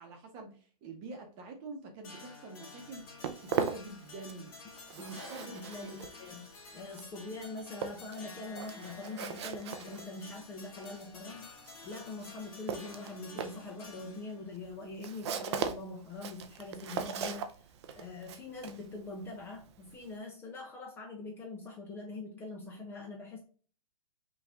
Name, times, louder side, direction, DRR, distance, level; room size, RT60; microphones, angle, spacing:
voice 1, 0.0-3.1 3.4-4.5 4.9-5.5 5.8-6.1, right 2 dB, 25° right, 4 dB, 1.0 m, -46 dB
sound 1, 2.0-14.5, left 4 dB, 35° left, 1.9 m, -51 dB
Walk footsteps, 2.8-4.5 4.8-20.2, right 7 dB, 50° right, 0.6 m, -40 dB
voice 2, 5.0-11.5 11.8-17.7 18.0-23.4, left 3 dB, 10° left, 0 dB, 0.6 m, -43 dB
5.8 x 2.6 x 3.5 m, 0.41 s
hypercardioid pair, 155°, 18 cm